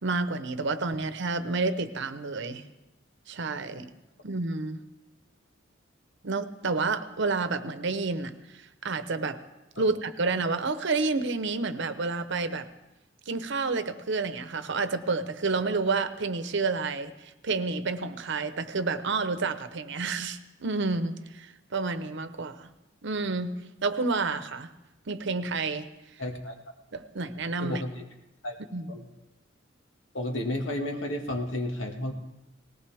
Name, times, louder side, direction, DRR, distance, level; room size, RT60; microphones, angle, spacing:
voice 1, 0.0-2.6 3.3-3.9 4.2-4.8 6.2-8.3 8.8-9.4 9.8-12.7 13.3-22.7 23.0-23.5 23.8-24.7 25.1-25.9 26.9-27.8 28.7-28.9, right 3 dB, 65° right, 11 dB, 0.9 m, -29 dB
voice 2, 26.2-26.5 27.6-28.0 28.4-28.6 28.9-29.1 30.1-32.1, left 1 dB, 75° left, 3 dB, 1.9 m, -32 dB
19.0 x 18.0 x 3.5 m, 0.98 s
head